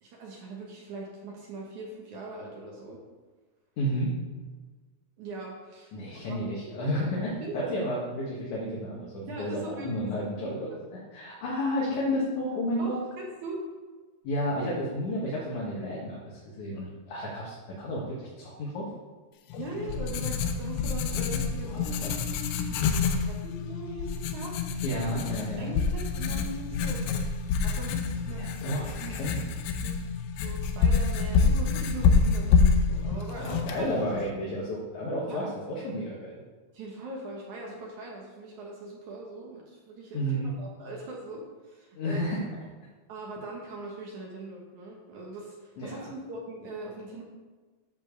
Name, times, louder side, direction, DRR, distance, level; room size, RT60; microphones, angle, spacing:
voice 1, 0.0-3.0 5.2-5.9 6.3-6.4 7.4-7.6 9.3-10.2 10.7-10.8 12.8-13.6 19.6-21.8 22.6-24.5 25.6-27.1 27.6-28.6 29.0-29.2 29.8-29.9 30.4-34.0 35.3-35.5 36.7-42.2 43.1-47.2, right 2 dB, 65° right, -2 dB, 2.1 m, -41 dB
voice 2, 3.8-4.1 5.9-13.0 14.2-18.9 21.6-22.1 24.8-25.7 28.3-29.4 33.4-36.4 40.1-40.5 41.9-42.4 45.8-46.0, equal, 60° left, -5 dB, 2.4 m, -32 dB
Writing, 19.5-34.3, left 5 dB, 80° left, 2.6 m, -27 dB
11.0 x 4.4 x 6.5 m, 1.3 s
omnidirectional pair, 4.7 m